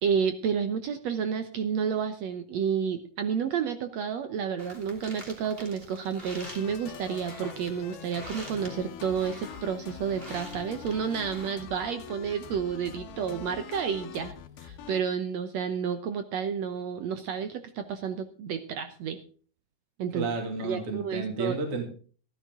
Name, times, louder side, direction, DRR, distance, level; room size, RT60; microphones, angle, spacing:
voice 1, 0.0-14.3 14.6-19.2 20.0-20.3 20.6-21.6, right 7 dB, 75° right, 8 dB, 1.6 m, -30 dB
sound 1, 4.6-11.5, right 1 dB, 15° right, 2.6 m, -47 dB
sound 2, 6.4-15.0, left 9 dB, 85° left, 3.5 m, -44 dB
voice 2, 20.1-21.9, right 3 dB, 40° right, 4 dB, 3.0 m, -31 dB
14.5 x 13.0 x 3.7 m, 0.41 s
omnidirectional pair, 4.3 m